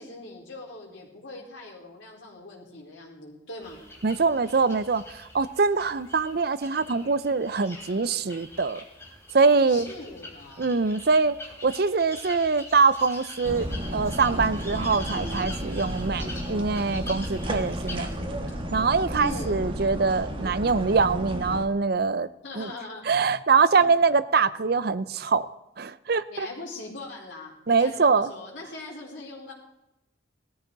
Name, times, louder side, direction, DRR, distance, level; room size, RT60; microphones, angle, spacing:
voice 1, 0.0-3.9 9.7-10.6 19.2-19.7 22.4-23.0 23.8-23.9 26.3-29.5, left 2 dB, 75° left, -1 dB, 4.3 m, -41 dB
sound 1, 3.6-18.2, left 2 dB, 15° left, 3.1 m, -44 dB
voice 2, 4.0-8.8 9.3-9.9 10.6-11.4 11.6-18.1 18.7-22.3 22.6-22.7 23.0-25.5 25.8-26.5 27.7-28.3, right 4 dB, 55° right, 15 dB, 0.5 m, -23 dB
sound 2, 13.4-21.6, equal, 25° right, 1.6 m, -32 dB
18.0 x 13.5 x 4.0 m, 0.91 s
head